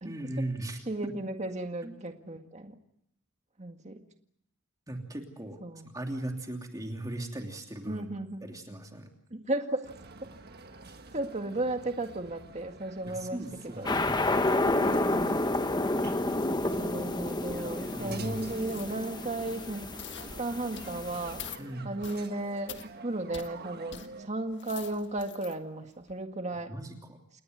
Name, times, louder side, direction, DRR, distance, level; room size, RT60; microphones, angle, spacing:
voice 1, 0.0-0.8 1.2-1.3 1.8-1.9 4.9-5.6 5.9-8.1 8.4-9.1 13.1-14.4 18.0-18.4 21.6-21.9 26.7-27.2, right 1 dB, 15° right, 3 dB, 2.9 m, -38 dB
voice 2, 0.9-2.8 3.6-4.0 5.6-5.9 7.9-8.5 9.3-9.9 11.1-13.4 13.8-13.9 14.8-15.5 16.6-21.4 21.8-26.7, right 2 dB, 30° right, 5 dB, 1.9 m, -35 dB
sound 1, 9.8-24.3, right 3 dB, 45° right, 1.6 m, -49 dB
sound 2, 13.9-21.5, left 2 dB, 20° left, 1.2 m, -30 dB
sound 3, 18.6-19.0 19.3-19.7 20.0-20.3 20.8-21.0 21.4-21.6 22.0-22.3 22.7-22.9 23.3-23.5 23.9-24.1 24.5-25.6 26.0-26.1, left 8 dB, 55° left, 1.7 m, -45 dB
29.5 x 19.0 x 8.0 m, 0.72 s
head